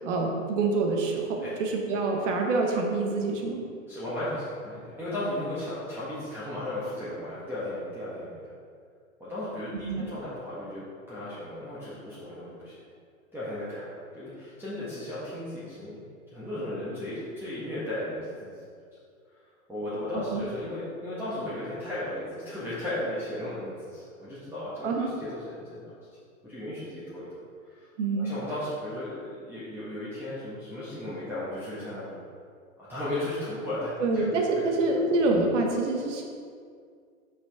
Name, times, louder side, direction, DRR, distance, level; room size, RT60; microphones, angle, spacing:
voice 1, 0.0-3.6 9.8-10.1 20.1-20.5 24.8-25.1 28.0-28.3 34.0-36.2, right 3 dB, 60° right, 1 dB, 1.2 m, -26 dB
voice 2, 3.9-8.5 9.2-12.8 13.3-16.0 16.3-18.6 19.7-25.9 26.4-27.3 27.6-27.9 28.2-32.1 32.8-34.2 34.7-35.0, left 1 dB, 5° right, -11 dB, 1.5 m, -35 dB
5.8 x 5.6 x 3.5 m, 2.2 s
hypercardioid pair, 105°, 41 cm